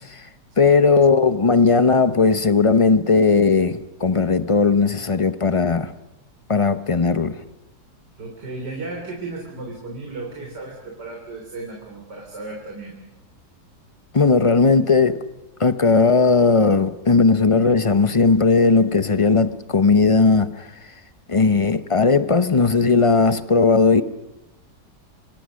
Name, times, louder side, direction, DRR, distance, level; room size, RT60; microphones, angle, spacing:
voice 1, 0.6-5.9 6.5-7.4 14.1-15.2 15.6-20.7 21.3-24.0, left 4 dB, 35° left, 0.5 m, -17 dB
voice 2, 8.2-13.0, right 3 dB, 70° right, 4.3 m, -34 dB
27.0 x 25.0 x 6.5 m
omnidirectional pair, 1.9 m